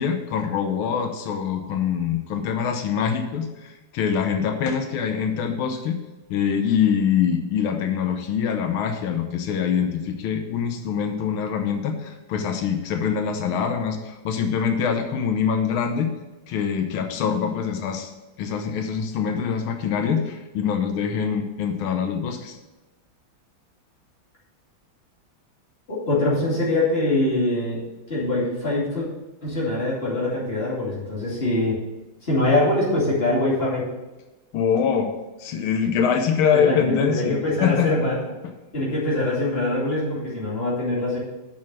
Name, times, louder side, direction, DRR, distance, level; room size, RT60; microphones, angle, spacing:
voice 1, 0.0-6.0 6.3-16.1 16.5-18.1 18.4-22.6 34.5-35.1 35.4-37.9, left 7 dB, 90° left, 6 dB, 1.7 m, -24 dB
voice 2, 25.9-27.8 28.1-29.1 29.4-31.8 32.2-33.9 36.5-38.2 38.7-41.2, left 2 dB, 30° left, -6 dB, 2.7 m, -23 dB
6.4 x 6.3 x 7.4 m, 1.1 s
omnidirectional pair, 2.2 m